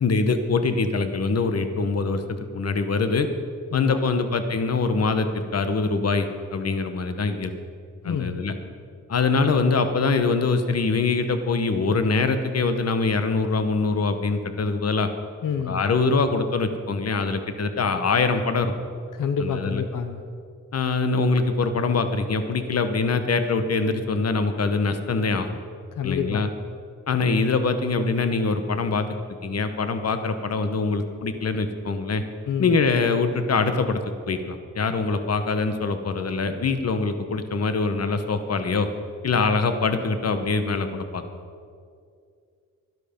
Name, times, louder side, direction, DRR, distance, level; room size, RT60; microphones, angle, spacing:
voice 1, 0.0-3.3 3.7-7.5 8.0-8.5 9.1-15.1 15.7-18.7 19.4-19.8 20.7-25.5 26.0-26.5 27.1-32.2 32.6-38.9 39.2-41.2, left 4 dB, 50° left, 8 dB, 1.0 m, -24 dB
voice 2, 3.7-4.3 8.0-8.4 15.4-15.8 19.1-20.2 25.9-26.5 32.5-32.8, left 6 dB, 85° left, 7 dB, 0.8 m, -28 dB
12.5 x 12.0 x 5.2 m, 2.3 s
wide cardioid pair, 95°, 31 cm